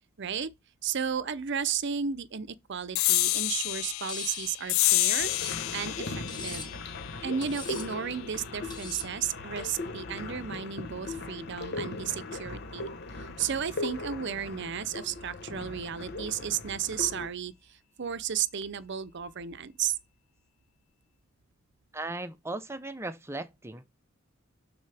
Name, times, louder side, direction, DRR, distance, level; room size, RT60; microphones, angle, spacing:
voice 1, 0.2-0.5 0.8-5.3 5.7-6.7 7.2-12.9 13.2-20.0, right 8 dB, 60° right, 0.6 m, -33 dB
sound 1, 2.9-9.8, left 19 dB, 85° left, 0.3 m, -30 dB
Cutlery silverware, 3.0-3.5 4.1-4.5 5.1-5.7 6.3-6.8 7.4-7.9 8.7-9.1, left 4 dB, 20° left, 1.7 m, -40 dB
sound 2, 5.2-17.3, left 2 dB, 55° left, 1.1 m, -39 dB
voice 2, 21.9-23.9, right 2 dB, 15° right, 0.8 m, -37 dB
12.0 x 4.3 x 3.4 m
head